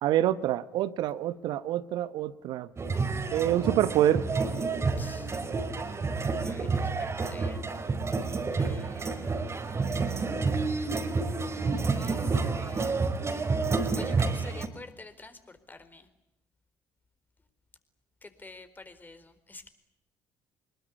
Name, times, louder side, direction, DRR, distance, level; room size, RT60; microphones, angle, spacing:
voice 1, 0.0-2.7 3.3-4.2, right 12 dB, 60° right, 14 dB, 1.1 m, -26 dB
sound 1, 2.8-14.7, right 4 dB, 35° right, 4.3 m, -29 dB
voice 2, 5.0-5.3 6.4-7.6 8.5-10.2 11.0-11.2 11.8-12.9 13.9-16.1 18.2-19.7, left 3 dB, 20° left, 10 dB, 4.3 m, -49 dB
25.5 x 22.0 x 9.8 m, 0.83 s
figure-of-eight pair, 50°, 8 cm